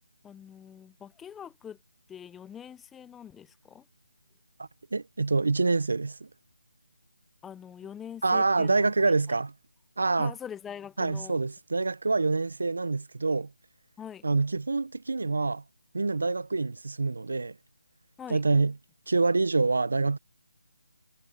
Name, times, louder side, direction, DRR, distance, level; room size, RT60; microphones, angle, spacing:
voice 1, 0.2-1.8 2.1-3.9 7.4-9.4 10.2-11.4 14.0-14.3 18.2-18.4, left 8 dB, 5° left, 0.3 m, -44 dB
voice 2, 4.9-6.3 8.2-9.5 10.0-10.3 11.0-13.5 14.2-15.6 15.9-17.6 18.3-18.7 19.1-20.2, right 3 dB, 55° right, 0.5 m, -26 dB
hypercardioid pair, 180°, 0 cm